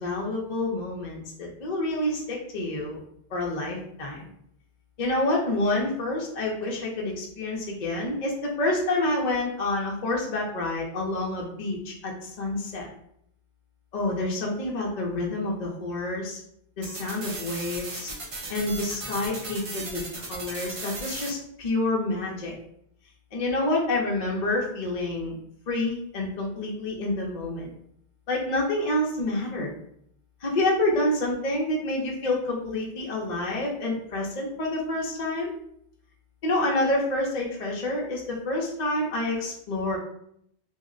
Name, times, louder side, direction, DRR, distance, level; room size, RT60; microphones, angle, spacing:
voice 1, 0.0-3.0 3.3-4.3 5.0-12.9 13.9-16.4 16.8-18.1 18.5-22.5 23.3-25.4 25.7-27.7 28.3-29.7 30.4-35.5 36.4-40.0, left 2 dB, 45° left, -2 dB, 0.7 m, -28 dB
sound 1, 16.8-21.3, right 2 dB, 40° right, 0.5 m, -37 dB
2.7 x 2.1 x 3.6 m, 0.70 s
omnidirectional pair, 1.1 m